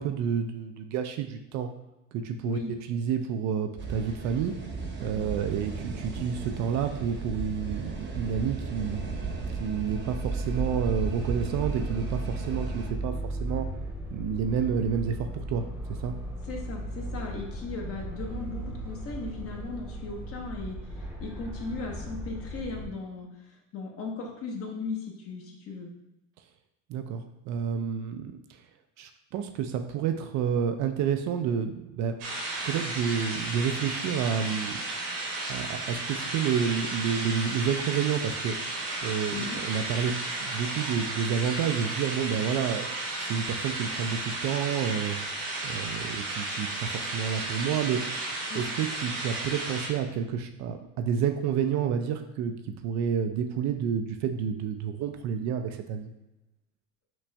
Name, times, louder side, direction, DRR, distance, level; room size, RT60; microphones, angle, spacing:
voice 1, 0.0-1.7 2.1-2.6 2.9-4.5 5.0-9.1 9.6-13.7 14.1-15.6 16.0-16.1 26.9-28.3 29.0-32.1 32.6-34.8 35.5-38.6 39.0-40.1 40.4-42.8 43.2-45.2 45.6-48.0 48.5-52.5 52.8-56.1, right 7 dB, 50° right, 7 dB, 0.5 m, -29 dB
sound 1, 3.8-12.9, right 3 dB, 30° right, 1.0 m, -36 dB
sound 2, 8.6-22.9, right 1 dB, 5° right, 0.9 m, -36 dB
voice 2, 16.5-25.9 39.3-39.6 48.5-48.7, left 3 dB, 40° left, 1 dB, 1.1 m, -37 dB
sound 3, 32.2-49.9, right 2 dB, 85° right, 1.6 m, -34 dB
6.1 x 2.5 x 3.3 m, 0.93 s
supercardioid pair, 105°, 35 cm